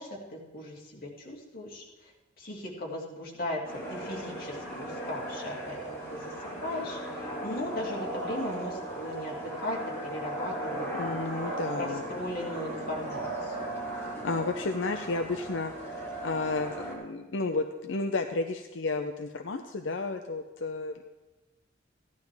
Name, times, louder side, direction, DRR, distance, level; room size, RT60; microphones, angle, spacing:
voice 1, 0.0-2.1 2.4-3.6 3.9-6.3 6.6-11.2 11.5-13.7, left 1 dB, 50° left, -4 dB, 3.0 m, -38 dB
sound 1, 3.6-16.9, right 1 dB, 15° left, 3.4 m, -37 dB
voice 2, 10.9-12.0 14.2-21.0, left 3 dB, 85° left, 5 dB, 0.7 m, -32 dB
16.0 x 12.0 x 3.5 m, 1.1 s
head